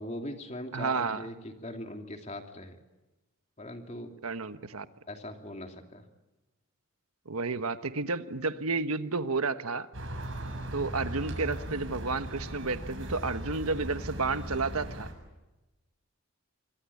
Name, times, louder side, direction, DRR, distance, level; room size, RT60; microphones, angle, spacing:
voice 1, 0.0-2.8 3.6-4.2 5.1-6.0, left 1 dB, 30° left, 4 dB, 2.9 m, -40 dB
voice 2, 0.7-1.3 4.2-4.9 7.3-9.9 10.7-15.1, right 3 dB, 85° right, 10 dB, 1.3 m, -31 dB
sound 1, 9.9-15.1, right 1 dB, 60° right, 7.8 m, -38 dB
26.0 x 24.0 x 8.6 m, 1.1 s
head